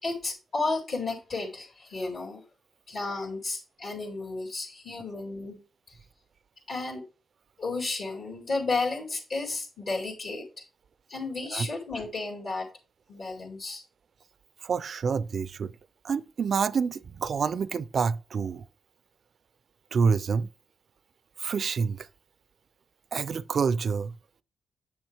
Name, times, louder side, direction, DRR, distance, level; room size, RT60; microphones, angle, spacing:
voice 1, 0.0-2.4 2.9-5.6 5.9-6.0 6.7-7.0 7.6-10.6 11.1-12.7 13.1-13.8, left 3 dB, 60° left, 2.3 m, -33 dB
voice 2, 14.6-15.7 16.0-18.7 19.9-20.5 21.4-22.1 23.1-24.1, right 5 dB, 55° right, 0.4 m, -27 dB
8.2 x 6.2 x 3.3 m
cardioid pair, 80°, 0 cm